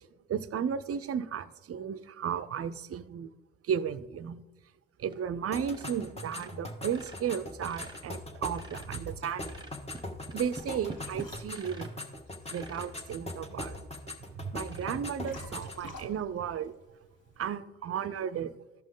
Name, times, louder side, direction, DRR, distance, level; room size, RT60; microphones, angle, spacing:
voice 1, 0.3-3.3 3.7-4.4 5.0-9.6 10.3-11.9 12.5-13.8 14.4-16.7 17.4-18.5, right 8 dB, 45° right, 13 dB, 0.6 m, -34 dB
sound 1, 5.1-5.4 5.6-6.0 6.2-9.0 9.4-12.1 12.4-12.9 13.5-13.6 14.1-14.2 14.6-14.8, right 2 dB, 15° right, 1.1 m, -47 dB
sound 2, 5.5-15.8, left 2 dB, 20° left, 1.4 m, -42 dB
Liquid, 9.8-17.5, left 2 dB, 65° left, 2.4 m, -52 dB
14.0 x 5.3 x 3.8 m, 1.1 s
supercardioid pair, 65°, 33 cm